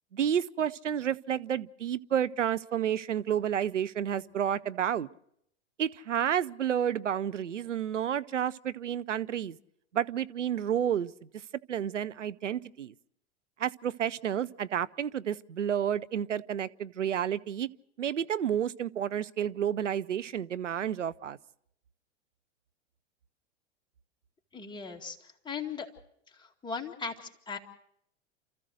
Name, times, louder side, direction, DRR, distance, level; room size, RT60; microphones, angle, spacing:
voice 1, 0.1-5.1 5.8-9.6 9.9-11.1 11.7-12.9 13.6-17.7 18.0-21.4, right 9 dB, 85° right, 0.7 m, -30 dB
voice 2, 24.5-25.9 26.3-27.6, left 5 dB, 10° left, 2.2 m, -38 dB
29.0 x 14.0 x 6.4 m
hypercardioid pair, 95°, 36 cm